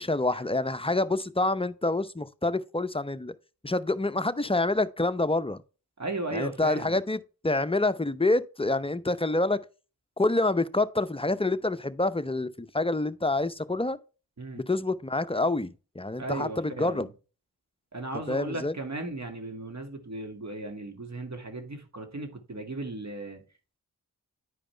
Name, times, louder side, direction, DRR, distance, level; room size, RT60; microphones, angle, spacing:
voice 1, 0.0-3.3 3.6-5.6 6.3-9.6 10.2-14.0 14.5-17.1 18.3-18.7, left 2 dB, 15° left, 0.7 m, -27 dB
voice 2, 6.0-6.9 14.4-14.6 16.2-17.1 17.9-23.4, right 2 dB, 40° right, 2.2 m, -36 dB
10.5 x 5.1 x 3.3 m
cardioid pair, 40°, 40 cm